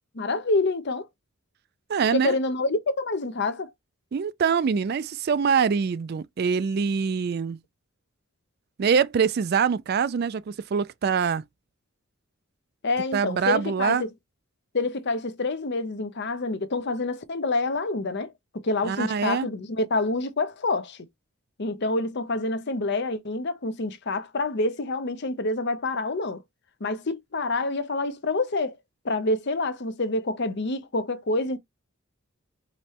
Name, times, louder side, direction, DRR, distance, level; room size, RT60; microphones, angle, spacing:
voice 1, 0.1-1.1 2.1-3.7 12.8-14.1 14.7-21.0 21.6-26.4 26.8-28.8 29.0-31.6, left 2 dB, 55° left, 0.7 m, -27 dB
voice 2, 1.9-2.3 4.1-7.6 8.8-11.4 13.1-14.0 18.9-19.5, right 6 dB, 50° right, 0.3 m, -24 dB
5.2 x 3.1 x 2.9 m
head